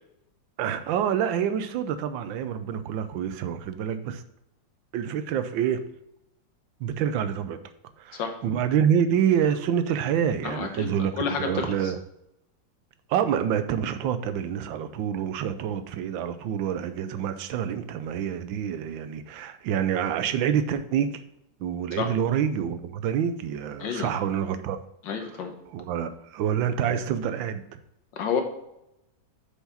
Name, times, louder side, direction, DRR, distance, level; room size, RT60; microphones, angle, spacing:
voice 1, 0.6-4.2 4.9-5.8 6.8-7.6 8.0-12.0 13.1-21.2 21.6-24.8 25.2-27.6, right 8 dB, 85° right, 11 dB, 1.4 m, -27 dB
voice 2, 10.4-10.9 11.2-11.7 22.0-22.1 23.8-24.1 25.1-25.5 28.1-28.4, left 5 dB, 75° left, 5 dB, 1.7 m, -29 dB
6.8 x 4.8 x 5.6 m, 0.84 s
omnidirectional pair, 2.0 m